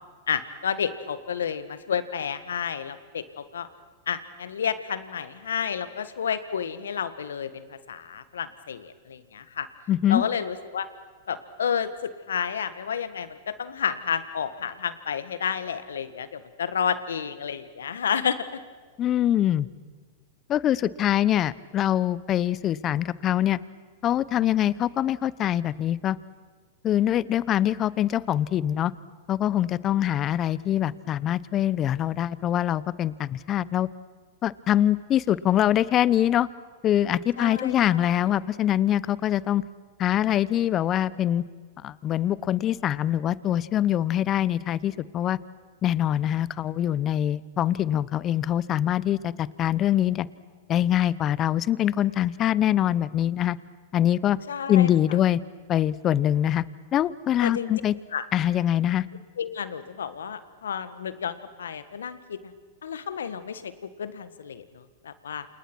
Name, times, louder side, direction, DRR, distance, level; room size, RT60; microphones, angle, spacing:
voice 1, 0.3-3.7 4.1-9.7 10.1-10.9 11.3-18.5 37.4-38.1 54.5-54.9 57.4-57.7 58.1-58.3 59.4-62.5 62.8-63.7 64.0-65.5, left 7 dB, 85° left, 13 dB, 1.6 m, -31 dB
voice 2, 9.9-10.2 19.0-19.7 20.5-23.6 24.0-26.2 26.8-28.9 29.3-33.9 34.4-36.5 36.8-39.6 40.0-41.4 41.8-45.4 45.8-50.3 50.7-53.6 53.9-54.4 54.7-55.4 55.7-56.6 56.9-57.9 58.3-59.0, left 11 dB, 35° left, 20 dB, 0.8 m, -24 dB
28.5 x 28.5 x 6.2 m, 1.5 s
hypercardioid pair, 110°, 0 cm